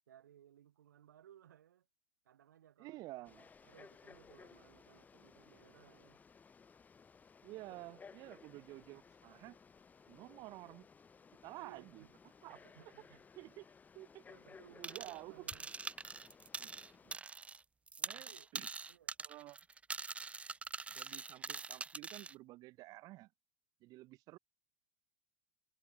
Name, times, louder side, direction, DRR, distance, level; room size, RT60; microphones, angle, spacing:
voice 1, 0.1-1.9 2.2-3.3 3.6-6.2 11.6-12.1 12.5-13.6 14.3-15.7 18.1-18.5 18.9-19.2, right 10 dB, 85° right, 6.7 m, -62 dB
voice 2, 2.8-3.5 7.4-9.6 10.1-10.9 11.4-12.1 12.4-12.6 13.4-13.7 13.9-14.2 14.7-15.5 16.6-16.7 17.0-17.2 18.0-18.7 19.2-19.6 20.9-23.3 23.8-24.4, right 19 dB, 45° right, 1.4 m, -51 dB
Frog, 3.2-17.2, left 5 dB, 15° left, 4.8 m, -60 dB
sound 1, 14.8-15.2 15.5-17.6 17.9-22.3, right 4 dB, 15° right, 0.9 m, -44 dB
hypercardioid pair, 120°, 9 cm